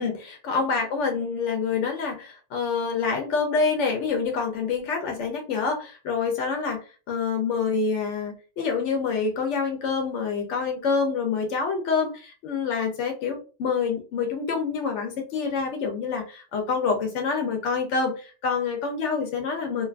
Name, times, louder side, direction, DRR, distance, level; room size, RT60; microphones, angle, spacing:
voice 1, 0.0-19.9, left 5 dB, 90° left, 3 dB, 0.9 m, -27 dB
2.8 x 2.2 x 2.3 m, 0.35 s
omnidirectional pair, 1.2 m